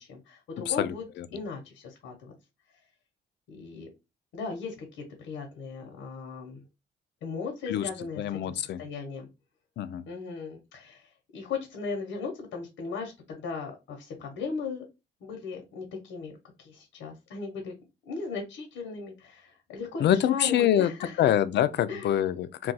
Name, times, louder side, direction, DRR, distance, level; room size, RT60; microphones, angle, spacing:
voice 1, 0.0-1.0 1.3-2.3 3.5-3.9 4.3-6.6 7.2-9.3 10.1-14.8 15.2-16.3 16.6-17.7 18.1-21.3 21.9-22.2, left 4 dB, 90° left, 0.9 m, -37 dB
voice 2, 0.6-1.3 7.7-7.9 8.2-8.8 9.8-10.0 20.0-20.9 21.2-22.7, left 11 dB, 60° left, 0.4 m, -25 dB
2.3 x 2.3 x 4.0 m
cardioid pair, 90°, 20 cm